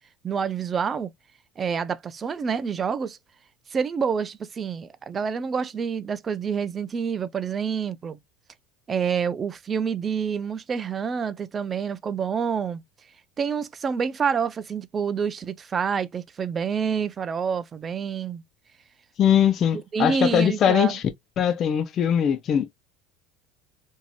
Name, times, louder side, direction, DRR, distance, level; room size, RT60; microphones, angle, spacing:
voice 1, 0.2-1.1 1.6-3.2 3.7-8.2 8.9-12.8 13.4-18.4 19.7-21.0, right 6 dB, 25° right, 0.3 m, -27 dB
voice 2, 19.2-21.0 21.4-22.7, left 9 dB, 35° left, 0.4 m, -21 dB
3.0 x 2.6 x 2.2 m
supercardioid pair, 135°, 0 cm